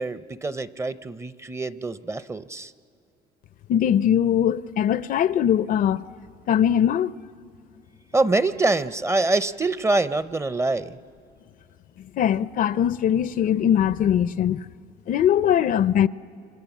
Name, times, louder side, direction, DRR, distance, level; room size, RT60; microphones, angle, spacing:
voice 1, 0.0-2.7 8.1-11.0, right 2 dB, 15° right, 0.6 m, -25 dB
voice 2, 3.7-6.0 6.5-7.1 12.0-14.6 15.1-16.1, left 9 dB, 55° left, 0.5 m, -21 dB
28.5 x 25.5 x 7.2 m
cardioid pair, 110°, 17 cm